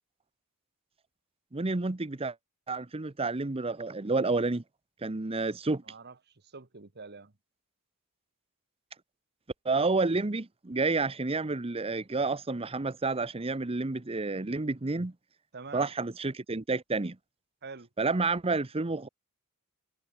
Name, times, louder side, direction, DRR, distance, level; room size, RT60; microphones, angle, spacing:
voice 1, 1.5-2.3 2.7-4.6 5.0-5.8 9.6-15.1 15.7-17.2 18.0-19.1, right 3 dB, 25° right, 0.8 m, -30 dB
voice 2, 5.9-7.3 15.5-15.9 17.6-17.9, right 4 dB, 50° right, 1.5 m, -46 dB
head